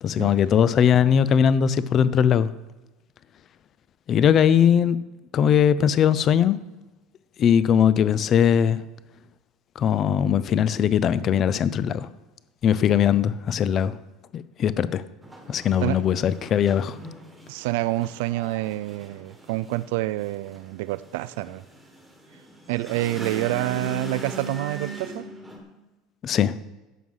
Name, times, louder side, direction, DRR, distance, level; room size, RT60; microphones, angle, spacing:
voice 1, 0.0-2.5 4.1-5.0 5.3-6.6 7.4-8.8 9.8-12.1 12.6-13.9 14.3-15.0 15.5-17.0 26.2-26.5, left 8 dB, 30° left, 0.4 m, -20 dB
sound 1, 15.2-25.6, right 1 dB, 5° right, 1.5 m, -39 dB
voice 2, 17.5-21.6 22.7-25.3, right 18 dB, 75° right, 0.4 m, -27 dB
11.0 x 7.7 x 5.5 m
cardioid pair, 170°, 0 cm